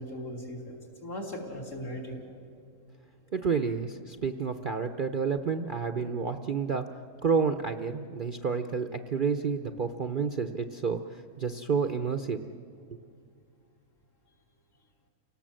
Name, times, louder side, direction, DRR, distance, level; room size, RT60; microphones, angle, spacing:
voice 1, 0.0-2.2, equal, 60° left, -1 dB, 3.5 m, -38 dB
voice 2, 3.3-6.9 7.2-12.4, right 5 dB, 50° right, 7 dB, 0.7 m, -30 dB
29.5 x 18.5 x 7.6 m, 2.3 s
omnidirectional pair, 1.5 m